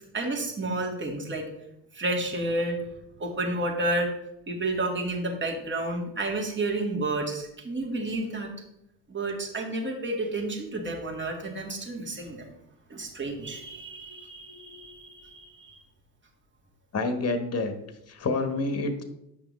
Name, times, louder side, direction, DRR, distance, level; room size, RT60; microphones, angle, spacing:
voice 1, 0.1-1.4 1.9-2.8 3.2-4.1 4.5-8.5 9.1-12.5 12.9-15.8, right 2 dB, 25° right, 0 dB, 1.8 m, -31 dB
voice 2, 16.9-17.7 18.1-19.0, left 3 dB, 30° left, 7 dB, 1.2 m, -28 dB
8.2 x 5.7 x 3.2 m, 0.83 s
hypercardioid pair, 70°, 47 cm